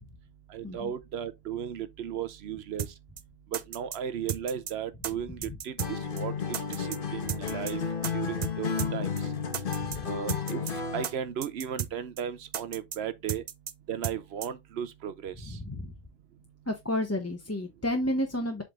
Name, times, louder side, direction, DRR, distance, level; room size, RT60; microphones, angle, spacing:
voice 1, 0.5-2.9 3.5-6.3 6.7-7.8 8.1-9.1 10.0-10.6 10.9-13.4 13.9-15.6, right 9 dB, 90° right, 1.0 m, -35 dB
sound 1, 2.8-2.9 3.2-3.3 3.5-4.0 4.3-4.7 5.0-5.1 5.4-5.9 6.2-6.3 6.5-7.0 7.3-7.7 8.0-8.1 8.4-8.5 8.8-8.9 9.2-9.3 9.5-10.0 10.3-10.7 11.0-11.1 11.4-11.9 12.2-12.3 12.5-13.0 13.3-13.7 14.0-14.2 14.4-14.5, right 8 dB, 50° right, 0.6 m, -34 dB
Acoustic guitar, 5.8-11.2, left 6 dB, 60° left, 1.1 m, -32 dB
voice 2, 15.5-15.9 16.7-18.6, left 1 dB, 15° left, 0.8 m, -31 dB
7.6 x 3.7 x 3.6 m
omnidirectional pair, 1.0 m